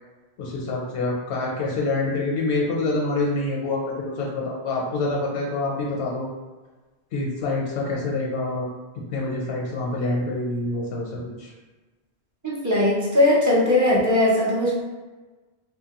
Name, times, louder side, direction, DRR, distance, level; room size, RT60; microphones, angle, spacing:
voice 1, 0.4-6.3 7.1-8.7 9.1-11.5, left 2 dB, 85° left, -2 dB, 0.8 m, -26 dB
voice 2, 12.4-14.8, left 1 dB, 30° right, -5 dB, 0.3 m, -19 dB
2.8 x 2.2 x 2.8 m, 1.2 s
omnidirectional pair, 1.1 m